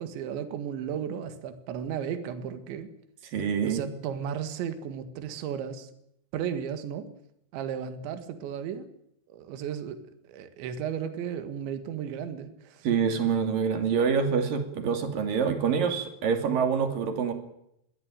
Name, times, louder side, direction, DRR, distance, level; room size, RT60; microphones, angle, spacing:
voice 1, 0.0-2.9 3.6-5.9 6.3-7.1 7.5-8.9 9.3-12.9, right 8 dB, 75° right, 9 dB, 4.1 m, -34 dB
voice 2, 3.3-3.9 12.8-17.3, right 6 dB, 50° right, 6 dB, 3.9 m, -26 dB
22.0 x 16.5 x 9.2 m, 0.76 s
omnidirectional pair, 5.4 m